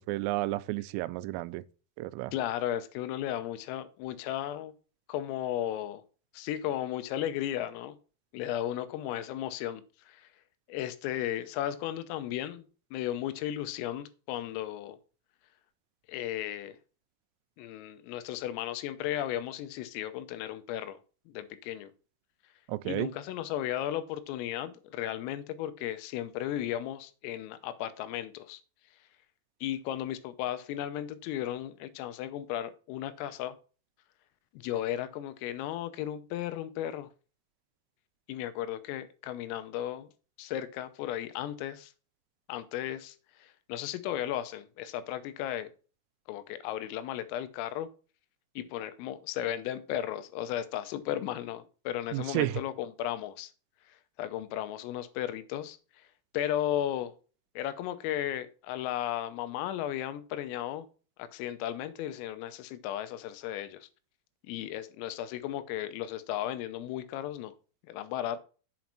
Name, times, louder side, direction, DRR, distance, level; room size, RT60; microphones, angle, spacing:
voice 1, 0.1-1.6 2.0-2.3 22.7-23.1 52.1-52.6, right 18 dB, 90° right, 3.2 m, -31 dB
voice 2, 2.3-4.7 5.1-6.0 6.4-8.0 8.3-10.2 10.7-12.7 12.9-15.0 16.1-16.8 17.6-21.0 21.3-21.9 22.9-28.6 29.6-33.6 34.6-37.1 38.3-40.1 40.4-41.9 42.5-43.2 43.4-45.7 46.3-47.9 48.6-53.5 54.2-55.8 56.3-57.1 57.6-60.9 61.2-63.9 64.5-67.5 67.9-68.4, left 12 dB, 85° left, 3.5 m, -35 dB
7.8 x 5.2 x 5.9 m
omnidirectional pair, 5.9 m